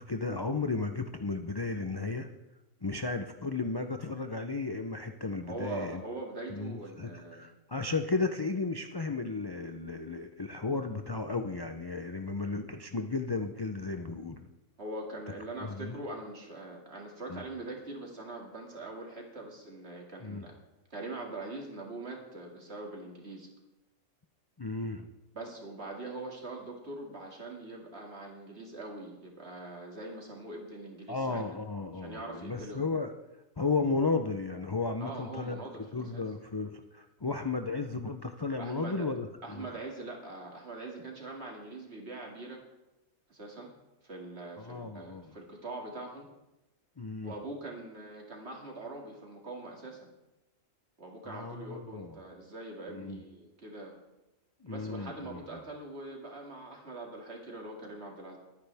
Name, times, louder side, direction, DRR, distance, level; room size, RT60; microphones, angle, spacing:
voice 1, 0.0-2.3 2.8-6.0 6.5-14.5 15.6-16.0 17.3-17.4 20.2-20.4 24.6-25.1 31.1-33.1 33.6-35.6 35.9-39.3 39.5-39.7 44.6-45.2 47.0-47.3 51.3-52.2 52.9-53.2 54.6-55.4, left 3 dB, 35° left, 6 dB, 0.4 m, -34 dB
voice 2, 5.5-7.5 14.8-20.5 20.9-23.5 25.3-31.4 31.9-32.9 35.0-36.2 38.6-39.1 39.4-42.6 43.3-43.7 44.0-46.3 47.2-50.1 51.0-54.0 54.7-58.4, right 2 dB, 50° right, 0 dB, 2.6 m, -42 dB
21.0 x 9.7 x 3.5 m, 0.97 s
omnidirectional pair, 1.4 m